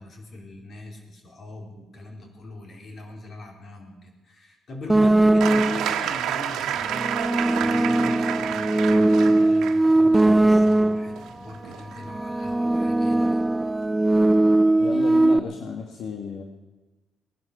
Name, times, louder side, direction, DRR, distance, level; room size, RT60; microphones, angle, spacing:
voice 1, 0.0-7.1 7.6-13.4, left 2 dB, 50° left, 3 dB, 4.0 m, -40 dB
sound 1, 4.9-6.0 6.7-11.2 12.0-15.4, right 2 dB, 10° right, 0.5 m, -20 dB
sound 2, 5.4-12.9 14.1-14.2, right 10 dB, 85° right, 1.4 m, -30 dB
voice 2, 14.8-16.4, left 6 dB, 70° left, 3 dB, 1.6 m, -33 dB
18.5 x 11.5 x 6.7 m, 1.2 s
cardioid pair, 90°, 0 cm